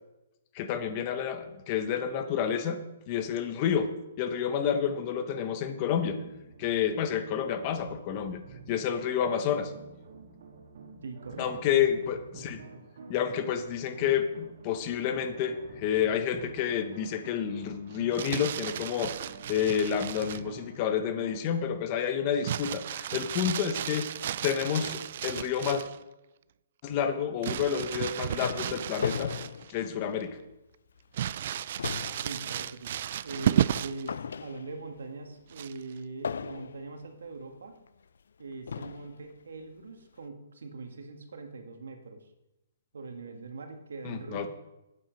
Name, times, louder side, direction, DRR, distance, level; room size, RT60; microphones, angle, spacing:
voice 1, 0.5-2.8 3.1-3.9 4.2-6.2 6.6-8.4 8.7-9.7 11.4-12.6 13.1-19.1 19.5-24.1 24.4-25.8 26.8-29.3 29.7-30.4 44.0-44.5, left 8 dB, 30° left, 9 dB, 0.9 m, -29 dB
sound 1, 5.8-21.5, right 4 dB, 70° right, 1.8 m, -49 dB
voice 2, 11.0-11.5 11.7-12.0 32.0-32.9 33.2-37.7 38.4-42.3 42.9-44.5, right 3 dB, 85° right, 5 dB, 1.6 m, -42 dB
Crumpling crinkling, 17.9-20.5 22.4-26.0 27.4-29.8 30.2-30.3 31.1-34.1 35.5-36.0, right 10 dB, 50° right, 0.3 m, -33 dB
sound 2, 27.9-30.5 31.0-31.1 31.5-35.0 36.2-37.0 37.9-38.0 38.7-39.2, left 6 dB, 80° left, 0.3 m, -37 dB
8.6 x 7.3 x 5.1 m, 0.95 s
hypercardioid pair, 155°, 0 cm